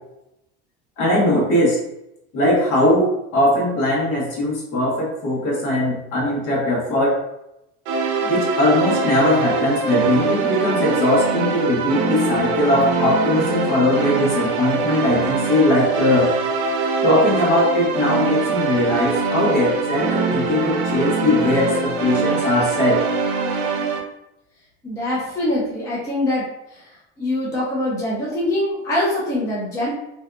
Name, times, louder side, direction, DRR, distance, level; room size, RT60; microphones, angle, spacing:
voice 1, 1.0-1.8 2.3-7.2 8.3-16.3 17.0-23.0, left 1 dB, 55° left, -4 dB, 1.1 m, -20 dB
sound 1, 7.9-24.0, right 4 dB, 65° right, 0.6 m, -23 dB
voice 2, 24.8-26.5 27.2-29.9, left 1 dB, 10° left, -6 dB, 0.4 m, -23 dB
2.6 x 2.3 x 2.2 m, 0.84 s
cardioid pair, 160°, 30 cm